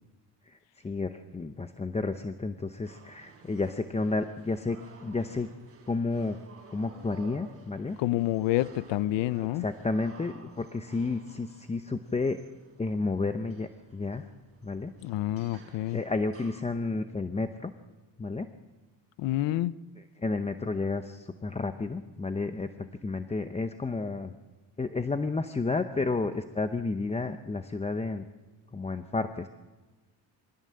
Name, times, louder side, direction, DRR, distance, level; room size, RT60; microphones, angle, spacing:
voice 1, 0.8-5.5 5.9-6.4 6.7-8.0 9.6-12.4 12.8-14.3 14.6-14.9 15.9-17.7 18.2-18.5 20.0-24.3 24.8-28.3 28.7-29.5, left 3 dB, 15° left, 0.7 m, -31 dB
sound 1, 2.8-16.6, right 4 dB, 35° right, 3.9 m, -55 dB
voice 2, 8.0-9.7 15.0-16.0 19.2-19.7, left 15 dB, 85° left, 0.7 m, -28 dB
23.5 x 16.5 x 7.6 m
cardioid pair, 125°, 43 cm